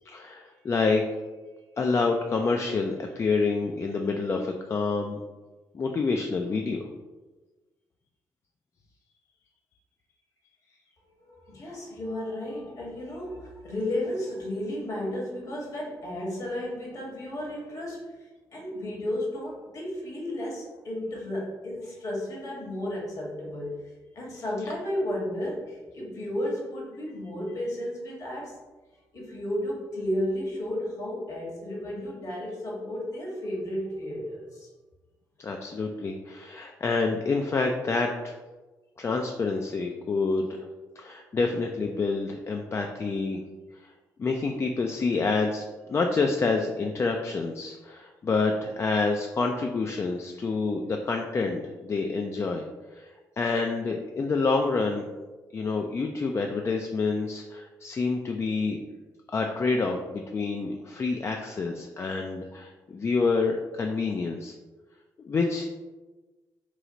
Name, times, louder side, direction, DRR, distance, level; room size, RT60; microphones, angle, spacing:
voice 1, 0.1-1.1 1.8-5.2 5.7-6.9 35.4-38.4 39.0-40.7 41.0-43.4 43.8-43.9 44.2-52.7 52.9-53.1 53.4-55.1 55.5-58.8 59.3-64.5 65.3-65.7, left 4 dB, 35° left, 3 dB, 0.3 m, -27 dB
voice 2, 11.2-18.1 18.5-23.7 24.1-28.6 29.1-34.7, left 1 dB, 55° left, -2 dB, 1.4 m, -33 dB
3.1 x 2.4 x 3.9 m, 1.2 s
supercardioid pair, 65°, 7 cm